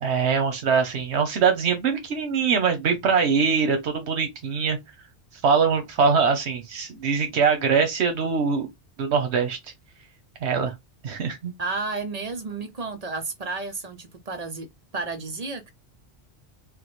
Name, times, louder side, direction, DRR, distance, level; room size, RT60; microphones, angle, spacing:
voice 1, 0.0-4.8 5.4-8.7 9.0-9.6 10.4-10.7 11.0-11.5, right 5 dB, 80° right, 1.1 m, -23 dB
voice 2, 11.6-14.7 14.9-15.7, right 3 dB, 40° right, 0.7 m, -32 dB
4.9 x 2.1 x 3.1 m
omnidirectional pair, 1.1 m